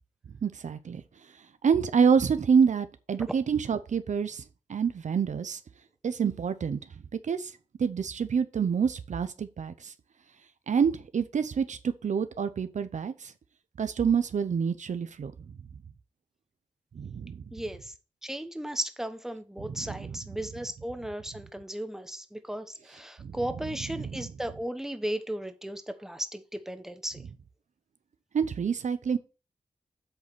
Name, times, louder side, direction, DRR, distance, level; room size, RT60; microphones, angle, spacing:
voice 1, 0.4-1.0 1.6-4.4 4.7-5.6 6.0-6.8 7.3-7.5 7.8-9.9 10.7-13.3 13.8-15.3 17.0-17.4 19.6-20.2 23.2-23.3 24.1-24.3 28.3-29.2, right 6 dB, 70° right, 0.6 m, -27 dB
voice 2, 17.5-17.9 18.2-27.2, right 1 dB, 5° right, 1.1 m, -35 dB
8.0 x 4.1 x 6.8 m
cardioid pair, 55°, 13 cm